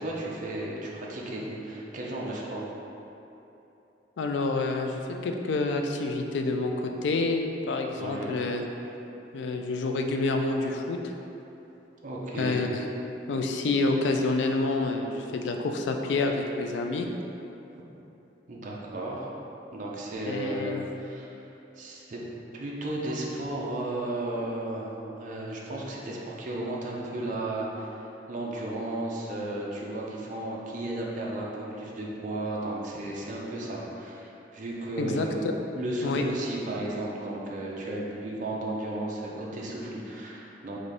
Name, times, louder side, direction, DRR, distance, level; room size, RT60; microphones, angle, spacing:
voice 1, 0.0-2.7 8.0-8.4 12.0-12.6 18.5-19.3 19.7-21.3 21.8-22.2 22.5-35.3 35.7-40.8, right 1 dB, 45° right, -3 dB, 0.5 m, -34 dB
voice 2, 4.2-8.6 9.3-11.1 12.3-12.7 13.3-17.1 20.3-20.8 35.0-35.3 36.0-36.2, left 3 dB, 85° left, 4 dB, 0.3 m, -28 dB
3.8 x 2.6 x 3.3 m, 3.0 s
head